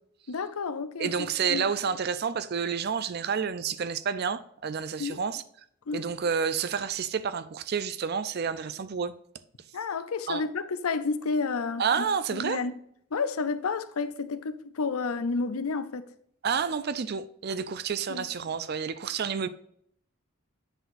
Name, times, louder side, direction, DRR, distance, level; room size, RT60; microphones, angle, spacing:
voice 1, 0.3-1.7 5.0-5.2 5.9-6.0 9.7-12.0 12.3-12.8 13.1-16.1 18.1-18.2, left 4 dB, 85° left, 0.6 m, -31 dB
voice 2, 1.0-5.4 5.9-9.1 10.3-10.4 11.8-12.6 16.4-19.5, right 6 dB, 45° right, 0.4 m, -29 dB
8.0 x 6.0 x 2.6 m
head